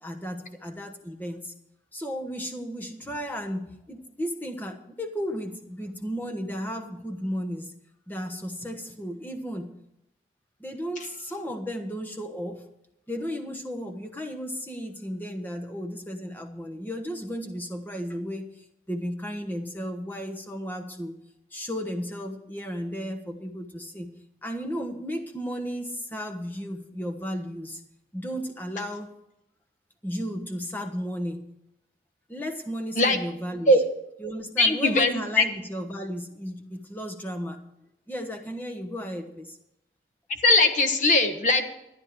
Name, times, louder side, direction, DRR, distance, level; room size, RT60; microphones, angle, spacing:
voice 1, 0.0-1.5 1.9-7.7 8.1-9.7 10.6-12.6 13.1-18.5 18.9-21.1 21.5-24.1 24.4-27.8 28.1-29.1 30.0-31.5 32.3-33.7 34.2-37.6 38.1-39.6, equal, 10° left, 4 dB, 1.2 m, -34 dB
voice 2, 34.6-35.1 35.4-35.5 40.4-41.6, left 2 dB, 45° left, 6 dB, 1.3 m, -19 dB
13.0 x 10.5 x 4.7 m, 0.85 s
head